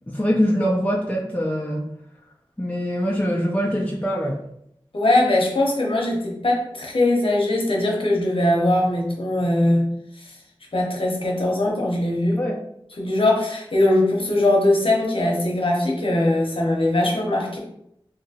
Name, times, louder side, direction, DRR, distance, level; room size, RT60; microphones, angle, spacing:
voice 1, 0.1-1.9 2.6-4.4 12.4-12.6, equal, 15° left, -4 dB, 0.5 m, -23 dB
voice 2, 4.9-9.9 10.2-10.3 10.7-12.4 13.0-17.6, left 1 dB, 70° left, -2 dB, 0.8 m, -21 dB
2.9 x 2.6 x 2.8 m, 0.74 s
wide cardioid pair, 45°, 10 cm